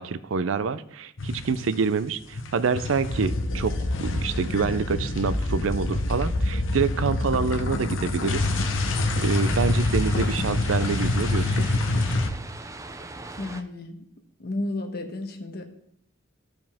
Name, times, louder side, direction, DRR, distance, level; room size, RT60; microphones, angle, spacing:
voice 1, 0.0-8.5 9.2-11.7, right 5 dB, 85° right, 14 dB, 0.5 m, -27 dB
sound 1, 1.2-2.0 2.2-12.3, left 2 dB, 80° left, 0.8 m, -26 dB
sound 2, 8.3-13.6, right 2 dB, 15° right, 0.4 m, -40 dB
voice 2, 13.4-14.1 14.4-15.6, left 2 dB, 50° left, 4 dB, 1.1 m, -32 dB
14.0 x 5.0 x 3.5 m, 0.71 s
head